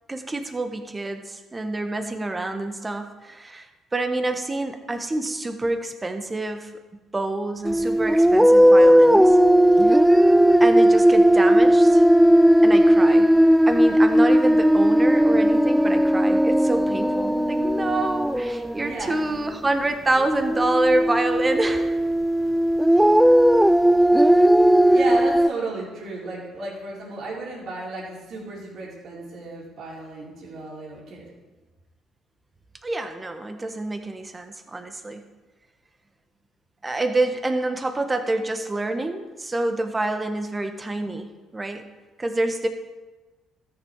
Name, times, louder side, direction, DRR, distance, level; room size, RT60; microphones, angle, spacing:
voice 1, 0.1-3.7 3.9-6.7 7.1-9.4 10.6-12.0 12.6-13.3 13.7-22.0 32.8-35.2 36.8-41.8 42.2-42.7, right 2 dB, 25° right, 6 dB, 1.5 m, -27 dB
sound 1, 7.7-18.9 20.2-25.5, equal, 5° right, 0.4 m, -17 dB
voice 2, 18.8-19.3 24.9-31.3, right 3 dB, 55° right, -5 dB, 4.3 m, -34 dB
13.5 x 7.1 x 4.9 m, 1.2 s
hypercardioid pair, 55°, 0 cm